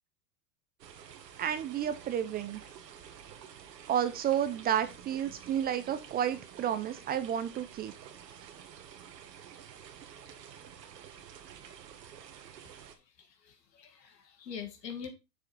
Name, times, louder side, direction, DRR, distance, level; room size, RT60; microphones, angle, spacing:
sound 1, 0.8-13.0, right 8 dB, 85° right, 1.7 m, -50 dB
voice 1, 1.4-2.6 3.9-7.9, right 9 dB, 20° right, 0.5 m, -31 dB
voice 2, 13.2-15.1, left 7 dB, 85° left, 2.4 m, -44 dB
6.8 x 4.9 x 5.2 m
hypercardioid pair, 120°, 48 cm